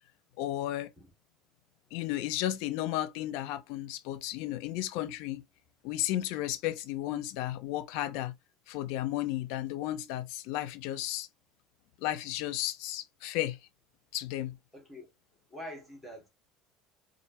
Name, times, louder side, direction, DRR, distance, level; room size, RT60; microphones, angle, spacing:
voice 1, 0.4-0.9 1.9-5.4 5.8-8.3 8.7-11.3 12.0-13.6 14.1-14.6, left 13 dB, 70° left, 0.6 m, -33 dB
voice 2, 14.7-15.1 15.5-16.3, left 1 dB, 5° left, 1.5 m, -45 dB
4.3 x 2.6 x 2.6 m
cardioid pair, 155°, 0 cm